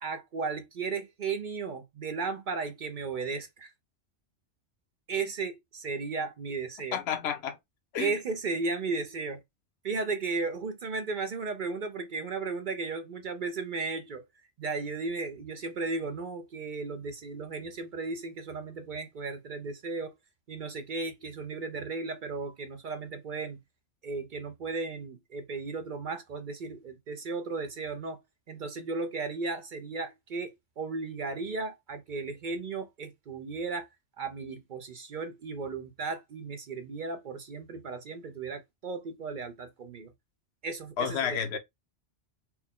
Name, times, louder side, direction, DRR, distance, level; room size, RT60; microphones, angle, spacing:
voice 1, 0.0-3.7 5.1-7.0 8.0-9.4 9.8-14.2 14.6-20.1 20.5-23.6 24.0-28.2 28.5-33.9 34.2-40.1 40.6-41.6, right 4 dB, 55° right, 0.6 m, -35 dB
voice 2, 6.9-7.6 7.9-8.1 41.0-41.6, left 8 dB, 65° left, 1.0 m, -30 dB
4.3 x 2.1 x 3.5 m
omnidirectional pair, 1.2 m